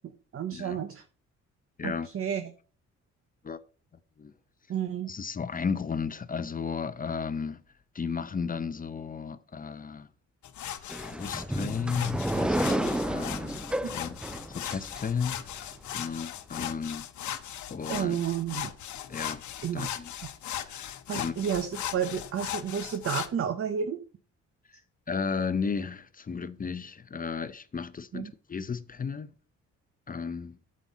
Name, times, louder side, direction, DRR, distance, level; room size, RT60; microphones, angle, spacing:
voice 1, 0.3-1.0 1.8-2.5 4.7-5.1 17.9-18.7 19.6-19.9 21.1-24.0 28.1-28.3, right 8 dB, 45° right, 0.9 m, -31 dB
voice 2, 5.1-7.6 7.9-10.1 10.8-13.6 13.9-14.2 14.5-17.1 17.7-18.2 19.1-19.4 19.7-20.1 20.6-21.5 25.1-29.3 30.1-30.6, left 5 dB, 30° left, 0.7 m, -34 dB
sound 1, 10.4-23.3, left 11 dB, 70° left, 1.0 m, -38 dB
sound 2, 10.9-15.6, right 1 dB, 5° right, 0.3 m, -31 dB
9.0 x 7.6 x 4.2 m
cardioid pair, 90°, 30 cm